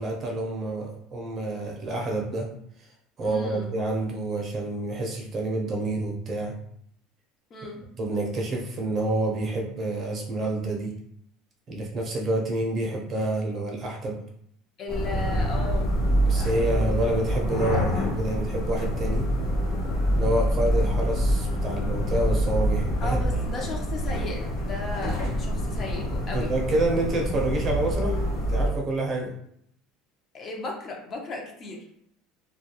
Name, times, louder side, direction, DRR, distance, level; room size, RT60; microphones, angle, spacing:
voice 1, 0.0-2.5 3.2-6.5 8.0-10.9 11.7-14.2 16.3-19.3 20.1-23.2 26.3-29.3, right 2 dB, 35° right, 0 dB, 0.6 m, -28 dB
voice 2, 3.2-3.7 7.5-7.8 14.8-15.9 16.3-17.1 23.0-26.5 30.3-31.8, left 2 dB, 35° left, 0 dB, 0.5 m, -36 dB
sound 1, 14.9-28.7, equal, 65° left, 1.0 m, -26 dB
2.2 x 2.2 x 2.8 m, 0.69 s
cardioid pair, 135°, 0 cm